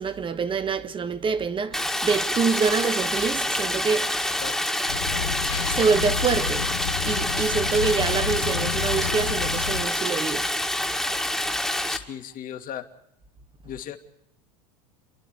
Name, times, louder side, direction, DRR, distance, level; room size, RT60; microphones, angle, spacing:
voice 1, 0.0-4.2 5.7-6.7 7.0-10.5, right 5 dB, 25° right, 1.4 m, -26 dB
Stream, 1.7-12.0, left 1 dB, ahead, 2.0 m, -27 dB
sound 1, 4.9-9.9, left 8 dB, 85° left, 1.2 m, -30 dB
voice 2, 11.9-12.9 13.6-14.0, left 10 dB, 45° left, 2.1 m, -36 dB
29.5 x 11.5 x 8.2 m
hypercardioid pair, 95°, 21 cm